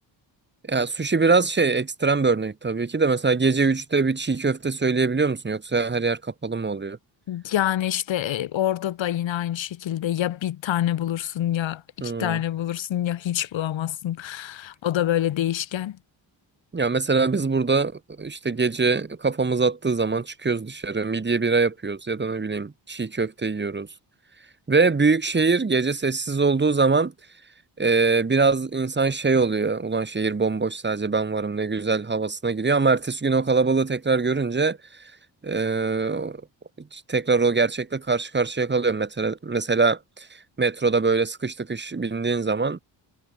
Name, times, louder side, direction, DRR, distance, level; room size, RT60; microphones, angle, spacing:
voice 1, 0.7-7.0 12.0-12.4 16.7-17.9 18.2-23.9 24.7-27.1 27.8-34.8 35.4-36.4 36.9-40.3 40.6-42.8, right 4 dB, 25° right, 6.0 m, -23 dB
voice 2, 7.3-16.0, left 12 dB, 80° left, 3.9 m, -26 dB
wide cardioid pair, 150°, 45 cm